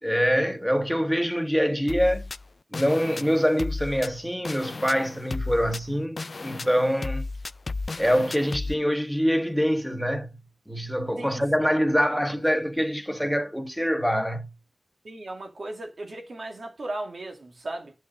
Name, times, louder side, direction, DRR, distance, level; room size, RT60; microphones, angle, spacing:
voice 1, 0.0-2.3 2.7-7.3 8.0-10.4 10.7-14.5, equal, ahead, 1.3 m, -25 dB
sound 1, 1.9-8.7, left 3 dB, 60° left, 0.4 m, -34 dB
voice 2, 15.0-17.9, right 2 dB, 75° right, 2.2 m, -36 dB
9.7 x 6.2 x 3.8 m
wide cardioid pair, 70°, 0 cm